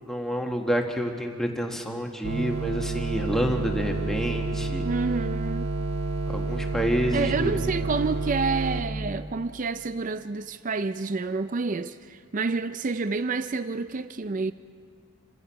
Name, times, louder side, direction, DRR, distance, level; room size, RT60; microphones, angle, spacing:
voice 1, 0.1-4.9 6.3-7.7, equal, ahead, 1.6 m, -28 dB
sound 1, 2.2-8.8, right 3 dB, 70° right, 1.3 m, -29 dB
voice 2, 4.8-5.7 7.1-14.5, right 4 dB, 35° right, 0.4 m, -28 dB
28.0 x 16.0 x 5.8 m
head